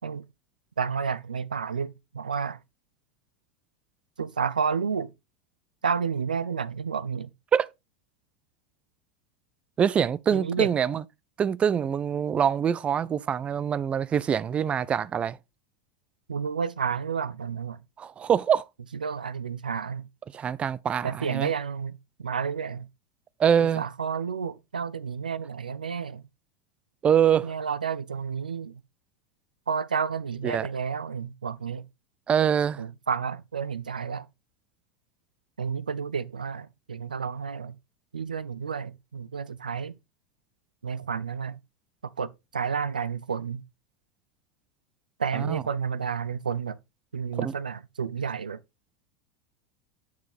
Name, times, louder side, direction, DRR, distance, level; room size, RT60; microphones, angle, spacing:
voice 1, 0.8-2.6 4.2-5.1 5.8-7.3 10.3-10.7 16.3-17.8 19.0-20.1 21.0-22.9 23.6-26.2 27.4-28.8 29.7-31.9 32.8-34.3 35.6-37.8 38.1-40.0 40.8-41.6 42.2-43.6 45.2-46.8 47.1-48.6, right 6 dB, 85° right, 0.5 m, -31 dB
voice 2, 9.8-11.0 11.4-15.4 18.0-18.6 20.3-21.5 23.4-23.8 27.0-27.5 30.4-30.7 32.3-32.8 45.4-45.6 47.4-47.5, right 8 dB, 25° right, 0.4 m, -24 dB
9.3 x 4.5 x 3.5 m
figure-of-eight pair, 85°, 4 cm